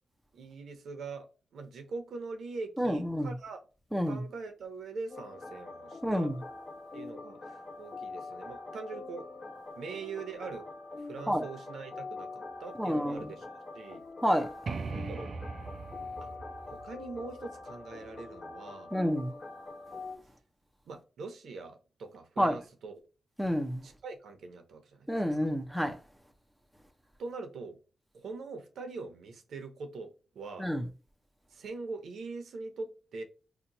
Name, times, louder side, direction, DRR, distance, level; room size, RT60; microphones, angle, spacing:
voice 1, 0.3-1.3 1.5-3.6 4.0-6.3 6.9-9.3 9.8-10.6 11.0-13.5 13.7-14.0 15.0-15.3 16.2-16.3 16.7-18.9 20.9-22.9 23.8-25.1 27.2-27.8 28.1-30.7 31.5-33.2, right 4 dB, 80° right, 0.7 m, -42 dB
voice 2, 2.8-3.3 3.9-4.2 6.0-6.3 11.3-11.4 12.8-13.3 14.2-14.5 18.9-19.3 22.4-22.6 23.4-23.9 25.1-26.0 30.6-30.8, equal, ahead, 0.5 m, -29 dB
sound 1, 5.1-20.2, left 3 dB, 50° left, 1.0 m, -44 dB
sound 2, 14.7-18.3, right 4 dB, 55° right, 0.3 m, -41 dB
2.8 x 2.2 x 3.9 m
cardioid pair, 90°, 0 cm